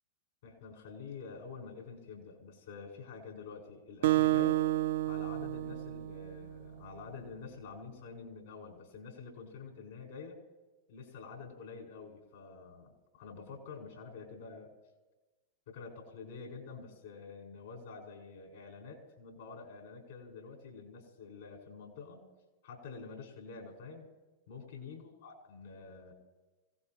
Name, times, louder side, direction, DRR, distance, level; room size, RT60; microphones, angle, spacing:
voice 1, 0.4-4.6 5.1-10.4 10.9-14.7 15.7-22.3 22.6-24.1 24.5-26.1, left 5 dB, 70° left, 0 dB, 5.1 m, -48 dB
Acoustic guitar, 4.0-6.8, right 15 dB, 70° right, 0.4 m, -30 dB
25.5 x 17.5 x 3.0 m, 1.2 s
hypercardioid pair, 100°, 0 cm